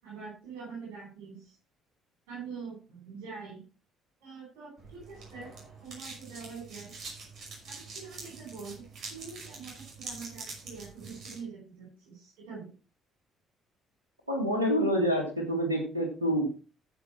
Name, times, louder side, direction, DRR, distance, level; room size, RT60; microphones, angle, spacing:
voice 1, 0.0-1.5 2.3-3.6 4.2-5.5 5.8-6.9 7.7-8.8 9.1-12.7, right 5 dB, 70° right, -3 dB, 4.5 m, -44 dB
sound 1, 4.8-11.4, right 3 dB, 50° right, 5.7 m, -45 dB
voice 2, 14.3-16.5, equal, 90° right, 2 dB, 1.9 m, -27 dB
15.0 x 5.4 x 4.4 m, 0.35 s
figure-of-eight pair, 50°, 0 cm